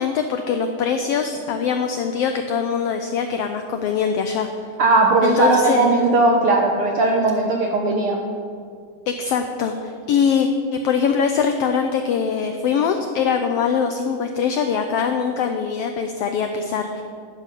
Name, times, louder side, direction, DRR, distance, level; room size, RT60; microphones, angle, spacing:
voice 1, 0.0-4.5 5.2-6.0 9.1-17.0, left 6 dB, 85° left, 6 dB, 1.3 m, -22 dB
voice 2, 4.8-8.2, right 3 dB, 75° right, 1 dB, 1.3 m, -18 dB
11.5 x 5.3 x 7.3 m, 2.3 s
omnidirectional pair, 3.4 m